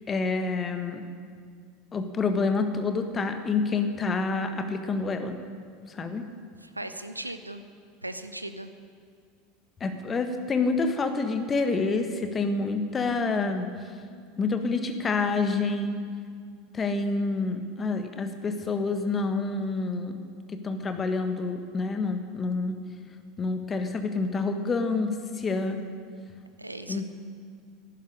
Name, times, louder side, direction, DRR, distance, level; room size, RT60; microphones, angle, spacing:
voice 1, 0.1-1.0 1.9-5.4 5.9-6.2 9.8-13.7 14.4-16.0 16.7-20.1 20.5-22.8 23.4-25.8 26.9-27.1, left 3 dB, 25° left, 7 dB, 1.6 m, -28 dB
voice 2, 6.6-7.6 8.0-8.7 26.6-27.1, right 1 dB, 85° right, 10 dB, 0.6 m, -38 dB
11.5 x 11.5 x 9.8 m, 2.1 s
figure-of-eight pair, 75°, 0 cm